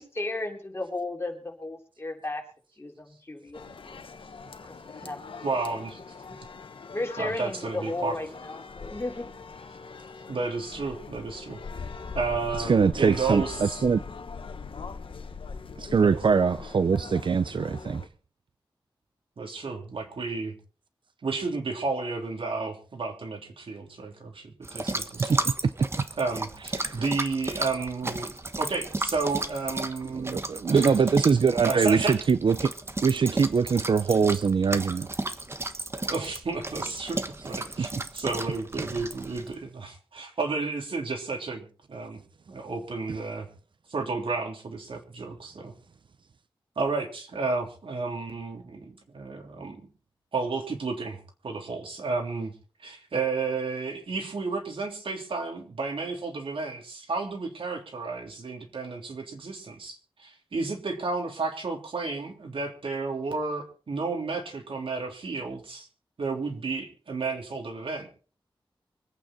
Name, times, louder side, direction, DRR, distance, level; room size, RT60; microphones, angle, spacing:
voice 1, 0.0-2.4 2.8-4.0 4.9-5.5 6.9-9.3, left 2 dB, 30° left, 3.6 m, -34 dB
sound 1, 3.5-18.1, left 5 dB, 80° left, 1.4 m, -41 dB
voice 2, 5.0-6.0 7.2-8.2 10.3-11.6 12.1-13.9 16.0-16.3 19.4-20.5 21.2-25.5 26.2-30.4 30.7-31.0 31.6-32.2 36.0-42.2 42.5-43.5 43.9-45.7 46.7-49.9 50.3-52.5 52.8-65.9 66.2-68.1, right 4 dB, 80° right, 3.3 m, -32 dB
voice 3, 12.6-14.0 15.8-18.0 24.8-25.0 25.3-25.9 26.8-27.0 30.1-32.7 33.0-35.1, right 5 dB, 65° right, 0.6 m, -23 dB
sound 2, 24.6-39.5, right 2 dB, 30° right, 1.3 m, -34 dB
24.5 x 9.1 x 4.3 m
wide cardioid pair, 105°, 9 cm